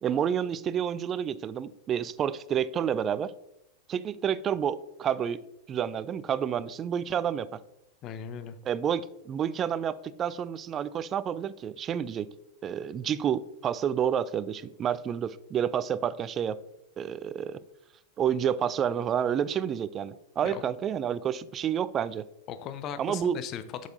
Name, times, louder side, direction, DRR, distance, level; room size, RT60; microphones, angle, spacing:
voice 1, 0.0-3.3 3.9-5.4 5.7-7.6 8.6-12.3 12.6-16.6 17.0-17.6 18.2-22.2 23.0-23.4, right 8 dB, 25° right, 17 dB, 0.3 m, -29 dB
voice 2, 8.0-8.6 20.4-20.6 22.5-23.9, left 8 dB, 35° left, 11 dB, 0.6 m, -38 dB
7.8 x 6.4 x 2.6 m, 0.83 s
figure-of-eight pair, 90°, 0 cm